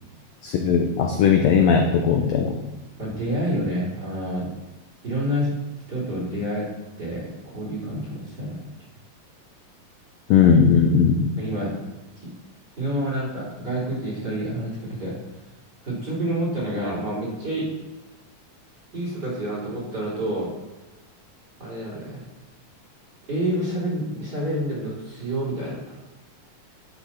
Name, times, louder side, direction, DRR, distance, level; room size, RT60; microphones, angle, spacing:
voice 1, 0.4-2.5 10.3-11.3, left 6 dB, 75° left, 3 dB, 1.6 m, -18 dB
voice 2, 3.0-4.5 5.0-5.5 5.9-6.7 7.0-7.3 7.5-8.6 11.4-11.7 12.8-15.2 15.8-17.7 18.9-20.5 21.6-22.2 23.3-26.0, right 1 dB, 30° right, -6 dB, 4.2 m, -28 dB
11.0 x 8.1 x 4.3 m, 1.1 s
omnidirectional pair, 3.9 m